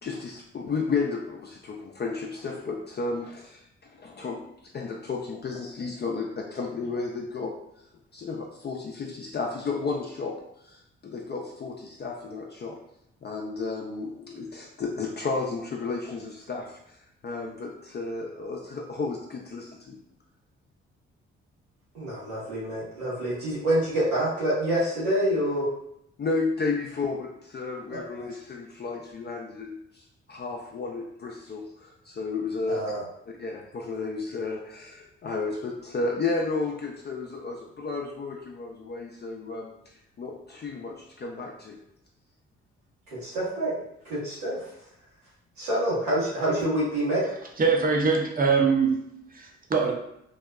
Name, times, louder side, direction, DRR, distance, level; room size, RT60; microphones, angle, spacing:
voice 1, 0.0-3.6 4.0-4.4 4.7-7.6 8.1-10.3 10.6-12.8 13.2-16.8 17.2-20.0 26.2-30.0 30.3-32.9 33.4-39.7 40.2-41.8, left 4 dB, 35° left, 0 dB, 0.5 m, -32 dB
voice 2, 21.9-25.7 27.9-28.0 32.7-33.0 43.2-43.7 44.0-44.7 45.6-47.2, right 1 dB, 85° right, -9 dB, 1.2 m, -27 dB
voice 3, 47.6-49.9, right 5 dB, 30° right, 2 dB, 0.6 m, -23 dB
2.7 x 2.1 x 2.3 m, 0.77 s
hypercardioid pair, 45°, 30 cm